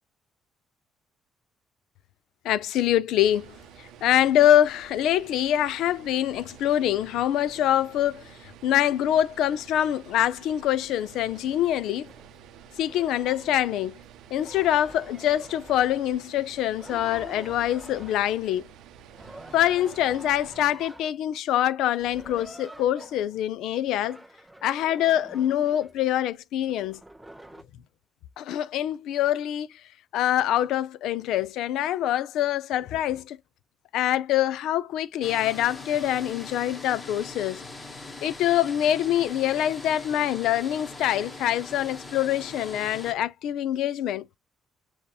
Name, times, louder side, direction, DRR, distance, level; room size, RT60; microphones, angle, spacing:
voice 1, 2.4-12.1 12.8-14.0 14.3-18.6 19.5-24.2 24.6-27.0 28.4-29.8 30.1-33.4 33.9-37.6 38.2-44.3, left 11 dB, 85° left, 0.4 m, -25 dB
sound 1, 3.2-20.7, right 8 dB, 85° right, 0.5 m, -50 dB
sound 2, 10.2-10.3 11.3-11.5 12.0-12.3 12.7-13.7 14.3-16.3 16.7-18.5 19.1-21.1 22.0-23.5 23.9-26.1 26.6-27.6, right 1 dB, 5° right, 0.4 m, -47 dB
sound 3, 35.2-43.1, left 2 dB, 15° left, 0.8 m, -42 dB
6.6 x 2.8 x 2.3 m
cardioid pair, 145°, 0 cm